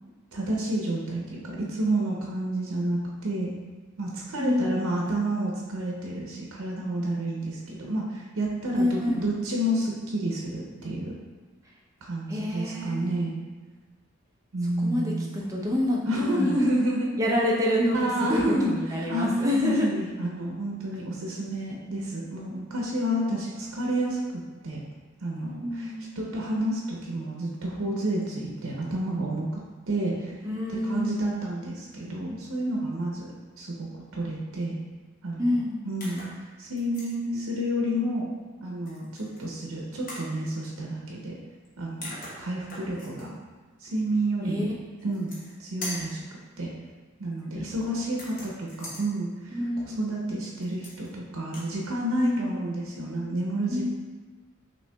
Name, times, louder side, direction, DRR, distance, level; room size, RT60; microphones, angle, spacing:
voice 1, 0.3-3.5 4.0-11.1 12.0-13.3 14.5-15.3 16.1-17.1 17.9-18.7 19.1-19.3 19.6-24.2 24.6-24.8 25.2-25.9 26.2-29.6 29.9-30.3 30.7-33.3 33.6-33.9 34.1-34.8 35.2-36.2 36.6-38.3 38.6-41.4 41.8-42.1 42.4-43.3 43.8-44.6 45.0-46.2 46.6-46.7 47.2-49.6 49.8-53.9, right 1 dB, 85° right, -2 dB, 0.6 m, -30 dB
voice 2, 4.4-4.9 8.7-9.4 12.3-13.3 14.8-16.6 17.2-19.9 25.6-26.0 30.4-31.4 35.4-35.8 44.4-44.7 47.5-48.0 49.5-50.4 52.2-52.5 53.7-53.9, left 1 dB, 15° right, -3 dB, 0.5 m, -28 dB
sound 1, 36.0-36.4 36.8-37.1 38.8-39.4 40.1-40.3 41.6-41.7 42.0-43.2 45.0-45.5 45.8-46.2 48.1-49.0 50.6-51.1 51.4-51.7, left 1 dB, 40° left, 0.9 m, -40 dB
5.4 x 2.9 x 2.2 m, 1.4 s
head